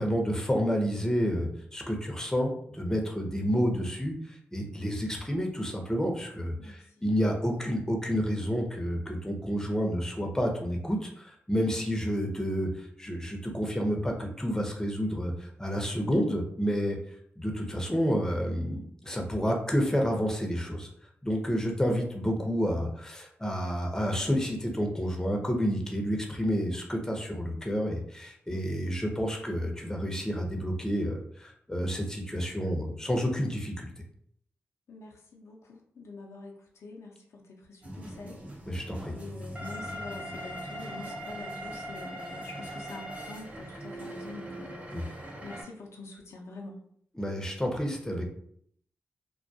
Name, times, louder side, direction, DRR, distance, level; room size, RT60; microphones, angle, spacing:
voice 1, 0.0-17.0 17.4-20.9 21.2-33.9 38.7-39.1 44.9-45.0 47.2-48.2, equal, 10° left, 1 dB, 0.7 m, -30 dB
voice 2, 6.6-7.5 11.7-11.9 21.8-21.9 28.5-28.8 34.9-38.4 39.1-44.8 45.4-46.8, left 3 dB, 70° left, -1 dB, 0.5 m, -46 dB
sound 1, 37.8-45.6, equal, 25° right, 0.7 m, -40 dB
2.2 x 2.1 x 2.6 m, 0.65 s
supercardioid pair, 45°, 5 cm